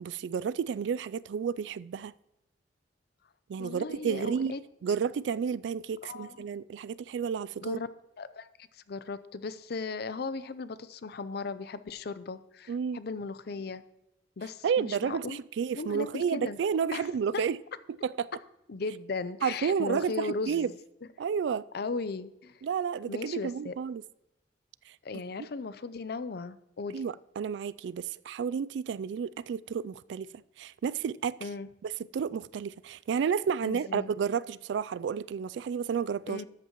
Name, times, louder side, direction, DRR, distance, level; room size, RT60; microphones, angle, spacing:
voice 1, 0.0-2.1 3.5-4.5 4.8-7.8 12.7-13.0 14.6-17.6 18.0-18.3 19.4-20.7 21.2-21.6 22.6-24.0 26.9-30.3 30.6-31.4 31.8-36.4, right 7 dB, 75° right, 0.3 m, -31 dB
voice 2, 3.6-4.6 6.0-6.5 7.6-7.9 8.2-13.8 14.4-15.4 15.7-16.6 16.9-17.4 18.7-20.8 21.7-22.6 23.1-23.7 25.0-27.0 31.4-31.7 33.6-34.1 36.3-36.5, left 4 dB, 60° left, 0.5 m, -37 dB
13.0 x 8.3 x 3.0 m
head